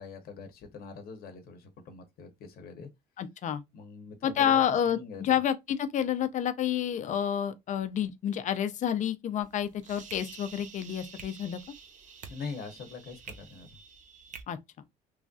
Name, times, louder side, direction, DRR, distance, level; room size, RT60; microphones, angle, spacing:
voice 1, 0.0-2.9 3.7-5.4 12.3-13.8, left 4 dB, 65° left, 0.8 m, -43 dB
voice 2, 3.2-3.6 4.2-11.6 14.5-14.6, left 9 dB, 45° left, 0.5 m, -29 dB
sound 1, 9.4-14.4, right 6 dB, 45° right, 0.6 m, -48 dB
3.1 x 2.5 x 2.3 m
cardioid pair, 110°, 17 cm